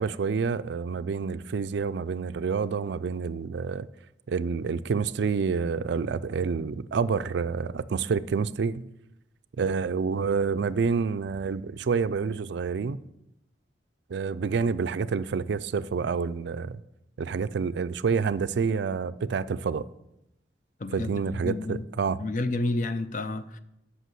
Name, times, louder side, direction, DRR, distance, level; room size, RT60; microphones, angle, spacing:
voice 1, 0.0-3.9 4.3-8.8 9.6-13.0 14.1-16.8 17.2-19.9 20.9-22.2, right 5 dB, 65° right, 0.4 m, -28 dB
voice 2, 20.8-21.8 22.2-23.6, left 2 dB, 45° left, 0.6 m, -30 dB
8.2 x 5.8 x 7.6 m
head